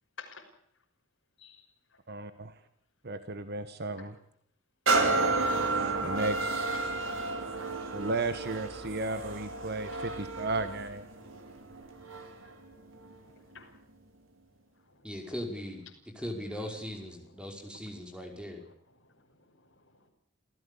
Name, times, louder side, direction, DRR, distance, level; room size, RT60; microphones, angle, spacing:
voice 1, 2.1-2.6 3.0-4.1 6.0-6.6 7.9-11.1, right 2 dB, 55° right, 11 dB, 1.5 m, -34 dB
sound 1, 4.9-12.5 13.0-13.1, right 3 dB, 80° right, 4.7 m, -31 dB
voice 2, 13.2-13.7 14.9-15.1 17.6-17.7 18.6-18.7 19.0-20.1, left 5 dB, 65° left, 0 dB, 6.2 m, -52 dB
voice 3, 15.0-15.9 16.1-18.6, equal, 5° right, 3 dB, 5.5 m, -39 dB
28.5 x 15.5 x 8.5 m, 0.69 s
head